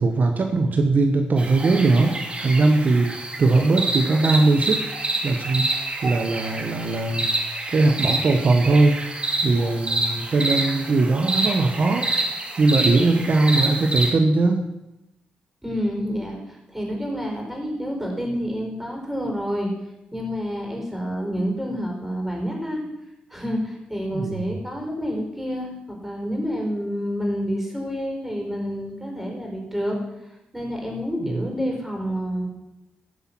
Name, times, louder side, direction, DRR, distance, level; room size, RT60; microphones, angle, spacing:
voice 1, 0.0-4.8 5.2-7.3 7.7-9.0 9.4-12.1 12.6-14.6 24.1-24.4 31.2-31.4, right 3 dB, 55° right, 4 dB, 1.1 m, -20 dB
sound 1, 1.4-14.1, right 2 dB, 30° right, 2.5 m, -27 dB
voice 2, 15.6-19.7 20.1-22.8 23.3-30.0 30.5-32.5, equal, 5° right, 0 dB, 4.7 m, -28 dB
14.5 x 5.6 x 6.0 m, 0.94 s
supercardioid pair, 50°, 3 cm